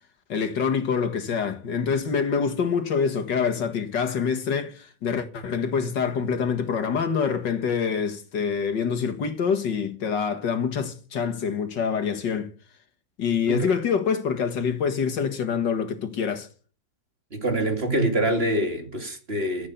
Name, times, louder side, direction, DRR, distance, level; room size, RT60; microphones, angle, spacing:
voice 1, 0.3-12.5 13.2-16.5, left 6 dB, 75° left, 2.3 m, -26 dB
voice 2, 17.3-19.7, right 1 dB, 35° right, 2.9 m, -25 dB
14.5 x 8.7 x 8.0 m
omnidirectional pair, 1.9 m